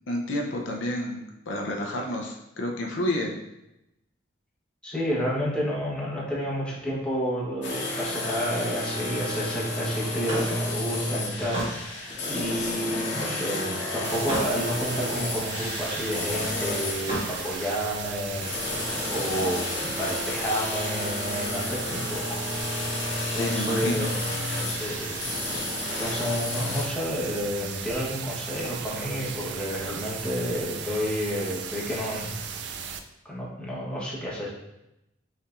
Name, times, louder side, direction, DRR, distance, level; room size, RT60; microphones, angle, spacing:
voice 1, 0.1-3.3 23.4-24.1, left 1 dB, 80° left, 1 dB, 0.6 m, -30 dB
voice 2, 4.8-18.7 19.1-22.5 23.3-24.1 24.7-25.7 26.0-32.3 33.2-34.5, equal, 5° left, -7 dB, 1.0 m, -30 dB
sound 1, 7.6-26.9, left 2 dB, 65° left, 1.0 m, -31 dB
Slam, 10.0-13.4 13.9-14.6 15.0-16.1 16.9-17.3, right 1 dB, 30° right, 1.6 m, -35 dB
sound 2, 14.0-33.0, right 7 dB, 65° right, 0.3 m, -36 dB
5.4 x 3.4 x 2.5 m, 0.89 s
head